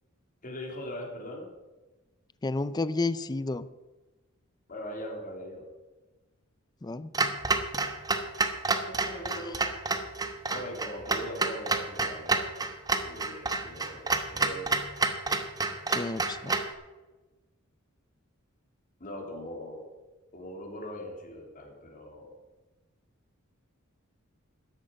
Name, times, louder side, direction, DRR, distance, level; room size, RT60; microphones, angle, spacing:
voice 1, 0.4-1.5 4.7-5.7 8.9-9.7 10.5-12.4 12.9-14.7 19.0-19.8 20.3-22.3, equal, 40° left, 1 dB, 3.0 m, -40 dB
voice 2, 2.4-3.7 6.8-7.1 15.9-16.5, left 3 dB, 20° left, 15 dB, 0.4 m, -31 dB
Clock, 7.1-16.7, right 3 dB, 20° right, 1.0 m, -29 dB
13.5 x 10.5 x 5.2 m, 1.2 s
head